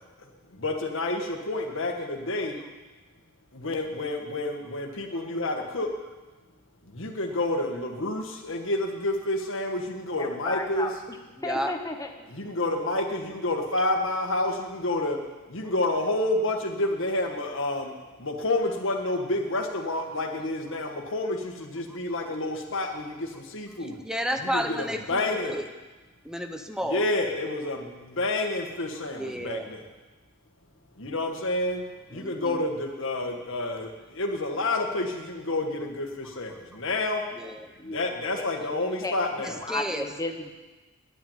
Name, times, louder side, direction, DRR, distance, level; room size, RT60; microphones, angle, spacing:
voice 1, 0.6-2.6 3.5-5.9 6.9-10.9 12.3-15.2 15.5-17.9 18.2-24.0 24.4-25.6 26.8-29.9 31.0-31.8 32.1-37.2 37.8-39.6, left 2 dB, 65° left, 3 dB, 1.7 m, -29 dB
voice 2, 10.2-11.2 11.4-12.3 37.8-38.0 38.7-39.1 39.6-40.5, left 2 dB, 15° left, 4 dB, 1.2 m, -34 dB
voice 3, 23.8-25.7 26.2-27.0 29.2-29.7 32.1-32.6 37.4-37.7 39.4-40.0, equal, 5° right, 6 dB, 0.8 m, -32 dB
9.8 x 9.3 x 9.0 m, 1.2 s
head